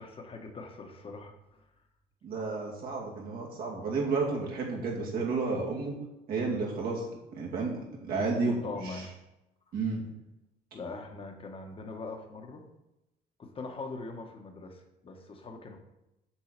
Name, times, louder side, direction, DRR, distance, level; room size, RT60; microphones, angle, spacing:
voice 1, 0.0-1.7 6.4-6.6 8.1-9.1 9.7-9.8 10.7-12.6 13.4-15.8, left 3 dB, 35° left, 4 dB, 1.3 m, -42 dB
voice 2, 2.2-5.9 6.3-7.0 7.3-7.7 8.0-9.0 9.7-10.0, right 4 dB, 60° right, -2 dB, 2.6 m, -31 dB
7.5 x 4.6 x 6.7 m, 0.92 s
cardioid pair, 110°, 17 cm